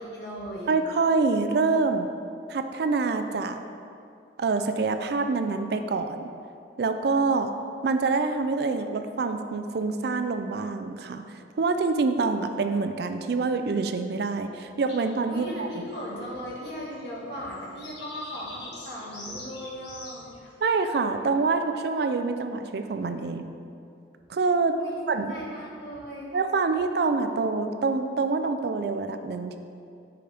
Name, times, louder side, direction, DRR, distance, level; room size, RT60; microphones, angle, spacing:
voice 1, 0.0-0.7 15.3-20.3 24.8-26.3, equal, 65° left, -5 dB, 1.7 m, -37 dB
voice 2, 0.7-2.1 2.5-3.6 4.4-6.3 6.8-7.5 7.8-11.3 11.6-15.8 20.6-23.5 24.3-24.7 25.1-25.3 26.3-29.6, right 4 dB, 60° right, 8 dB, 0.4 m, -26 dB
sound 1, 14.9-20.6, left 2 dB, 80° left, 1.5 m, -45 dB
9.3 x 5.1 x 3.4 m, 2.5 s
head